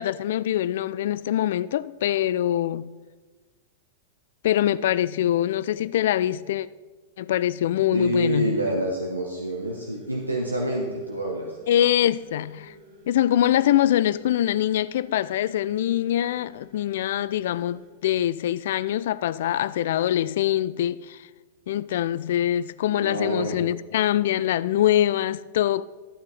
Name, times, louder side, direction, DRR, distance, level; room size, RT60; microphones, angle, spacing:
voice 1, 0.0-2.9 4.4-6.7 7.2-8.5 11.7-12.7 13.1-21.2 21.7-25.8, left 12 dB, 55° left, 0.3 m, -24 dB
voice 2, 7.9-11.6 22.9-23.6, right 1 dB, 90° right, 1.2 m, -27 dB
sound 1, 9.6-17.9, right 1 dB, 50° right, 3.5 m, -51 dB
13.0 x 8.8 x 4.1 m
figure-of-eight pair, 95°, 0 cm